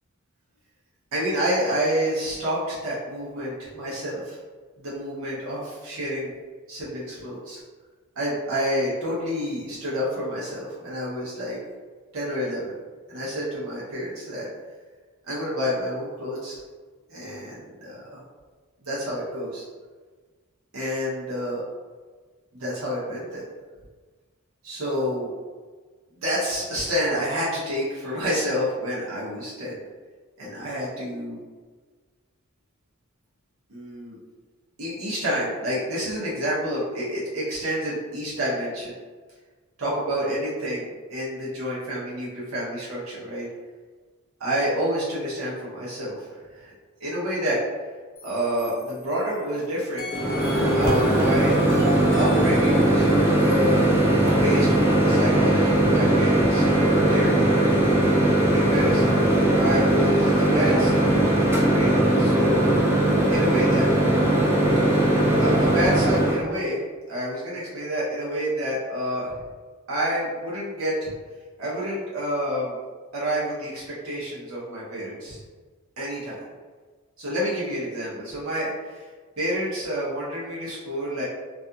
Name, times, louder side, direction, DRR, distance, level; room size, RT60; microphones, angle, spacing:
voice 1, 1.1-4.4 4.8-6.3 6.7-7.6 8.2-11.6 12.1-12.8 13.1-14.5 15.3-16.6 17.1-18.2 18.8-19.6 20.7-21.6 22.5-23.4 24.6-25.3 26.2-29.8 30.4-31.4 33.7-34.2 34.8-38.9 39.8-43.5 44.4-46.3 46.5-46.7 47.0-47.6 48.2-51.6 52.2-57.9 58.5-59.0 59.6-61.1 61.7-61.9 62.2-62.6 63.3-63.8 65.3-66.8 67.1-69.4 69.9-71.1 71.6-72.8 73.1-75.4 76.0-76.4 77.2-79.1 79.4-81.2, equal, 70° right, -7 dB, 0.7 m, -28 dB
sound 1, 48.2-49.5 50.0-55.0, left 1 dB, 60° left, 0.6 m, -39 dB
Microwave oven, 50.1-66.4, right 1 dB, 10° right, 0.4 m, -20 dB
2.4 x 2.3 x 2.6 m, 1.4 s
head